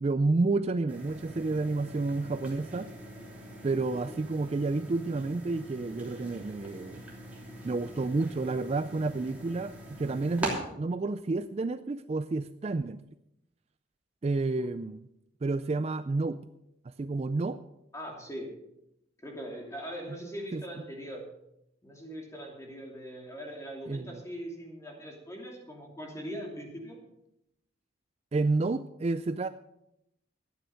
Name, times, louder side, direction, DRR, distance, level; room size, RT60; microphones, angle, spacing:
voice 1, 0.0-2.9 3.6-7.0 7.6-13.0 14.2-15.0 15.4-16.4 16.8-17.6 20.5-20.6 23.9-24.2 28.3-29.5, right 3 dB, 30° right, 12 dB, 0.3 m, -30 dB
sound 1, 0.9-10.5, right 1 dB, 10° right, 3.0 m, -43 dB
voice 2, 17.9-18.5 19.2-21.2 21.8-27.0, equal, 15° left, 0 dB, 2.8 m, -41 dB
12.5 x 9.4 x 6.4 m, 0.84 s
head